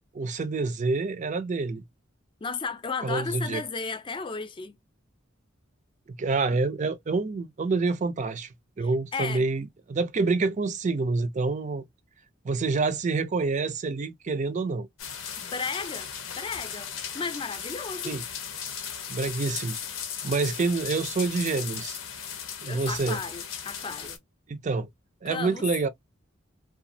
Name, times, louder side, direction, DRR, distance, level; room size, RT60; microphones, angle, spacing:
voice 1, 0.1-1.8 3.0-3.6 6.2-11.8 12.4-14.9 18.0-18.2 19.1-19.8 20.2-22.0 22.6-23.2 24.5-24.9 25.2-25.9, right 3 dB, 35° right, 0.4 m, -27 dB
voice 2, 2.4-4.8 8.8-9.5 15.4-18.2 22.7-24.2 25.3-25.7, left 4 dB, 25° left, 0.4 m, -34 dB
Blackbird in the rain, 15.0-24.2, left 7 dB, 75° left, 0.7 m, -37 dB
2.8 x 2.3 x 2.6 m
head